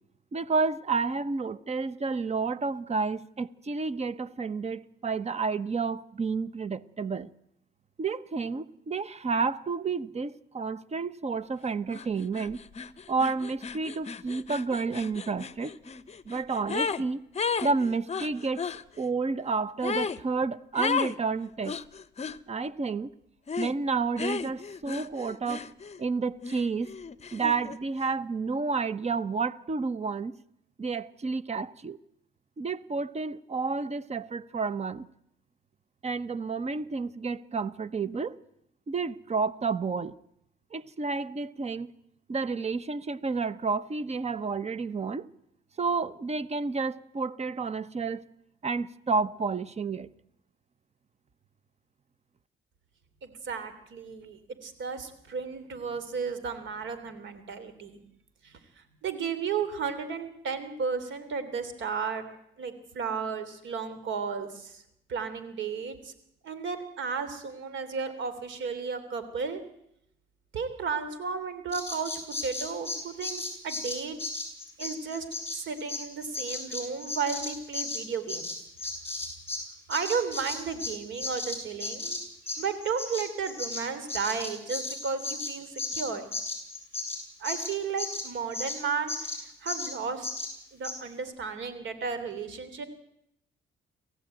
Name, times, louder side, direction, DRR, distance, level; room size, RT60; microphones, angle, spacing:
voice 1, 0.3-7.3 8.0-12.6 13.1-15.7 16.2-17.2 17.6-18.7 19.0-21.8 22.5-23.1 23.6-25.7 26.0-26.9 27.3-30.4 30.8-32.0 32.6-35.1 36.0-38.4 38.9-40.2 40.7-41.9 42.3-45.3 45.8-48.2 48.6-50.1, right 4 dB, 35° right, 1.0 m, -30 dB
sound 1, 11.9-12.1 12.3-17.0 17.3-18.8 19.8-20.2 20.8-21.2 21.6-22.4 23.5-23.8 24.2-26.0 26.4-27.8, left 5 dB, 35° left, 0.8 m, -34 dB
voice 2, 53.2-58.0 58.4-58.6 59.0-62.2 62.6-64.8 65.1-66.1 66.4-69.6 70.5-74.2 74.8-75.2 75.5-78.5 79.9-82.2 82.6-86.2 87.4-90.3 90.7-92.8, right 5 dB, 70° right, 3.2 m, -33 dB
Bird vocalization bird call bird song, 71.7-79.6 79.9-88.8 89.1-89.4 89.7-89.9 90.2-90.5 90.8-91.0, left 3 dB, 10° left, 7.8 m, -35 dB
27.5 x 15.0 x 9.1 m
cardioid pair, 90°, 20 cm